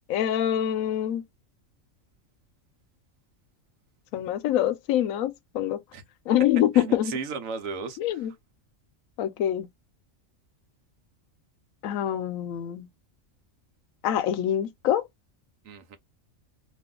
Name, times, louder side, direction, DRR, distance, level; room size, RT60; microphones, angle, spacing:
voice 1, 0.1-1.2 4.1-5.8 6.3-7.1 8.0-8.3 9.2-9.7 11.8-12.9 14.0-15.1, left 11 dB, 90° left, 1.0 m, -25 dB
voice 2, 6.7-8.2 15.6-16.0, right 5 dB, 90° right, 1.1 m, -35 dB
2.6 x 2.5 x 3.6 m
omnidirectional pair, 1.4 m